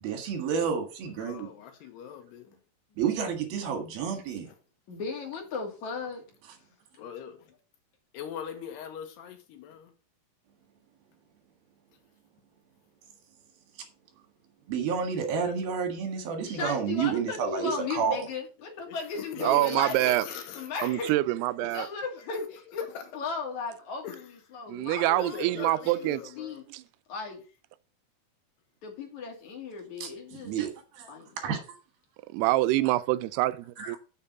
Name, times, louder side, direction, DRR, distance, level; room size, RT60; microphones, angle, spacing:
voice 1, 0.0-1.5 3.0-4.5 14.7-18.2 30.0-30.1 30.4-31.1 31.4-31.6 33.8-34.0, right 6 dB, 70° right, 3.6 m, -30 dB
voice 2, 1.0-2.5 4.5-4.6 7.0-7.5 8.1-9.9 15.2-15.5 18.9-20.9 21.6-21.7 22.3-22.4 22.8-23.1 24.0-24.2 25.0-26.6, left 8 dB, 90° left, 3.6 m, -41 dB
voice 3, 4.9-6.2 7.0-7.1 16.4-21.2 21.7-22.9 23.1-26.6 27.1-27.4 28.8-30.6 31.1-31.3, left 4 dB, 50° left, 3.6 m, -36 dB
voice 4, 19.4-20.3 20.8-21.9 24.7-26.2 26.7-26.8 32.3-34.0, right 16 dB, 85° right, 2.6 m, -26 dB
7.3 x 7.3 x 5.7 m
omnidirectional pair, 4.6 m